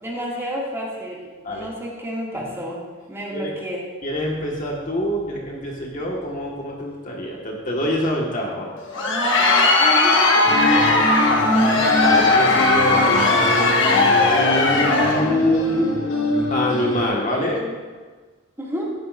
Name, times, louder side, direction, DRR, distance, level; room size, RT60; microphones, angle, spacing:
voice 1, 0.0-2.8 3.1-3.8 8.9-11.5 18.6-18.8, equal, 15° right, -5 dB, 2.3 m, -30 dB
voice 2, 4.0-8.7 12.0-15.9 16.5-17.7, left 1 dB, 40° left, -2 dB, 1.6 m, -25 dB
Crowd, 8.8-15.3, left 3 dB, 65° left, 1.4 m, -18 dB
sound 1, 10.5-17.1, equal, 80° left, 3.7 m, -25 dB
14.5 x 11.0 x 2.6 m, 1.4 s
head